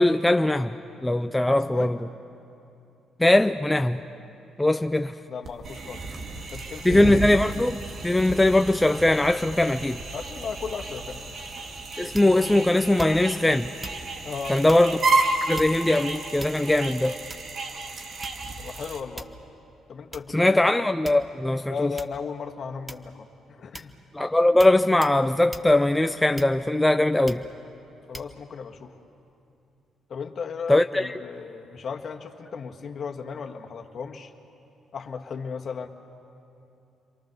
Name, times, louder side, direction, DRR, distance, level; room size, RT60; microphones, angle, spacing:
voice 1, 0.0-2.0 3.2-4.0 4.6-5.1 6.8-10.0 12.0-13.7 14.5-15.0 15.5-17.1 20.3-21.9 24.1-27.4 30.7-31.2, left 1 dB, 10° left, 7 dB, 0.5 m, -21 dB
voice 2, 5.3-6.1 6.5-7.0 10.1-11.4 14.2-14.6 18.6-19.3 19.9-20.6 21.7-23.9 28.1-29.0 30.1-34.3 34.9-35.9, left 5 dB, 55° left, 2 dB, 1.8 m, -35 dB
sound 1, 5.4-19.0, right 3 dB, 55° right, 2.0 m, -31 dB
sound 2, 12.1-12.5 13.0-13.4 13.8-14.1 14.7-14.9 15.5-15.9 16.4-16.8 17.3-17.6 18.2-18.6 19.2-19.5 20.1-20.3 21.0-21.5 22.0-22.2 22.9-23.2 23.7-24.0 24.6-24.8 25.0-25.2 25.5-25.7 26.4-26.8 27.3-27.5 28.1-28.3, right 2 dB, 20° right, 1.1 m, -41 dB
29.5 x 23.5 x 6.8 m, 2.7 s
cardioid pair, 90°, 0 cm